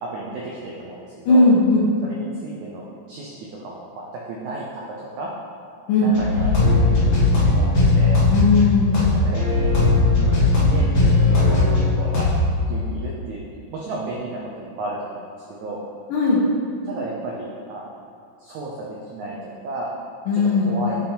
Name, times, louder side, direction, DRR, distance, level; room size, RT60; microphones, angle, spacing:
voice 1, 0.0-1.4 2.0-5.3 6.0-8.2 8.9-12.3 12.7-13.4 13.7-15.2 15.6-15.8 16.8-17.9 18.4-19.9 20.3-21.0, right 2 dB, 85° right, -4 dB, 1.6 m, -33 dB
voice 2, 1.3-1.9 5.9-6.2 8.3-9.0 16.1-16.4 20.3-20.8, left 3 dB, 70° left, -4 dB, 2.5 m, -17 dB
sound 1, 6.1-12.5, left 2 dB, 45° left, 2.3 m, -18 dB
7.0 x 5.5 x 4.4 m, 2.5 s
omnidirectional pair, 4.4 m